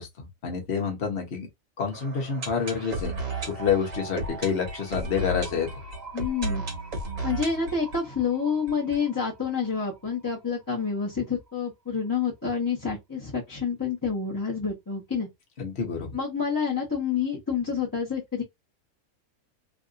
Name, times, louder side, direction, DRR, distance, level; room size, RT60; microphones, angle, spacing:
voice 1, 0.0-1.5 1.8-3.1 3.5-5.7 15.6-16.1, left 6 dB, 45° left, 1.3 m, -28 dB
sound 1, 1.9-9.7 10.0-10.1 10.2-10.3 10.9-11.0, right 2 dB, 60° right, 1.8 m, -35 dB
voice 2, 6.1-6.6 7.2-15.3 16.1-18.4, left 6 dB, 15° left, 1.1 m, -28 dB
3.4 x 2.7 x 2.5 m
omnidirectional pair, 1.6 m